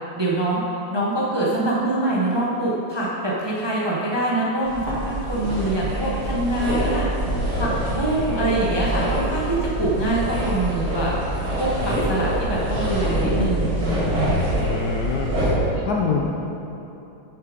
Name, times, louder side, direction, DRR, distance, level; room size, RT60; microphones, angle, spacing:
voice 1, 0.1-0.6 0.9-7.1 7.6-11.1 11.6-14.5, right 2 dB, 20° right, -5 dB, 0.7 m, -24 dB
sound 1, 4.6-15.5, right 1 dB, 45° right, 2.6 m, -25 dB
voice 2, 11.8-12.1 14.5-15.3 15.7-16.2, left 5 dB, 65° left, -1 dB, 1.0 m, -26 dB
8.4 x 7.2 x 5.1 m, 2.9 s
omnidirectional pair, 2.2 m